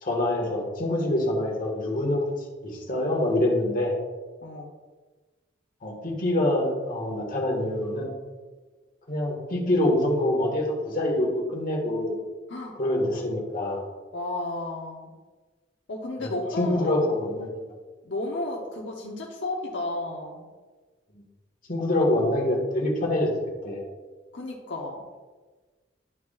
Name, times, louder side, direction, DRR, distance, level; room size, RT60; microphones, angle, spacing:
voice 1, 0.0-2.2 2.6-3.9 5.8-8.1 9.1-12.2 12.8-13.8 16.2-17.5 21.7-23.3 23.6-23.8, left 1 dB, 50° left, -2 dB, 1.7 m, -25 dB
voice 2, 14.1-15.1 15.9-17.0 18.0-20.5 24.3-25.0, left 2 dB, 80° left, -2 dB, 1.0 m, -32 dB
12.5 x 4.7 x 2.5 m, 1.3 s
head